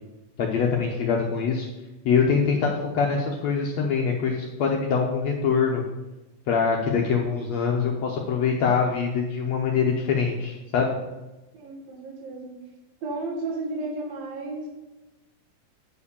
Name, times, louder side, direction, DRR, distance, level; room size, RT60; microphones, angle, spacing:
voice 1, 0.4-1.7 2.0-5.8 6.5-10.9, left 5 dB, 75° left, 0 dB, 1.6 m, -24 dB
voice 2, 11.5-12.6 13.0-14.7, right 2 dB, 80° right, -1 dB, 3.5 m, -33 dB
9.1 x 4.9 x 6.9 m, 1.1 s
omnidirectional pair, 4.1 m